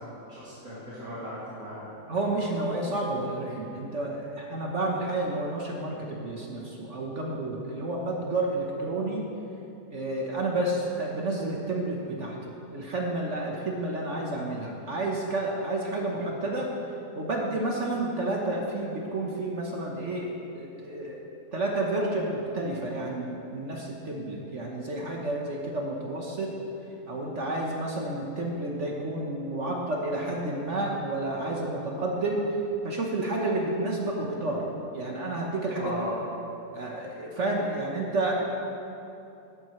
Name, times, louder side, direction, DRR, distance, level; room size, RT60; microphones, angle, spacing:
voice 1, 0.0-2.0 35.8-36.2, equal, 65° right, -12 dB, 3.1 m, -37 dB
voice 2, 2.1-9.3 9.9-12.3 12.7-16.7 17.2-21.2 21.5-26.6 27.1-32.5 32.8-34.6 34.9-35.9 36.7-38.5, right 2 dB, 50° right, -1 dB, 1.4 m, -30 dB
14.0 x 11.5 x 3.2 m, 2.7 s
omnidirectional pair, 1.7 m